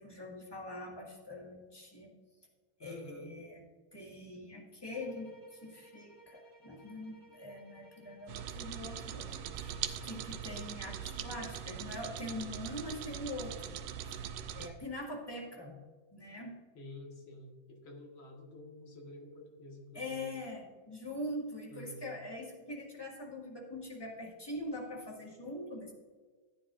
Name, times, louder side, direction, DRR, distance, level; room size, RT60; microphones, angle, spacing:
voice 1, 0.0-2.1 2.8-3.6 3.9-13.8 14.1-14.2 14.5-15.8 16.1-16.6 19.9-25.9, left 1 dB, 10° left, -1 dB, 1.8 m, -43 dB
voice 2, 2.8-3.3 16.7-20.3 21.7-22.1, left 1 dB, 75° left, 0 dB, 2.6 m, -49 dB
sound 1, 4.9-12.2, right 1 dB, 20° right, 2.9 m, -59 dB
sound 2, 8.3-14.7, right 9 dB, 80° right, 1.4 m, -41 dB
14.5 x 9.4 x 2.6 m, 1.5 s
omnidirectional pair, 2.2 m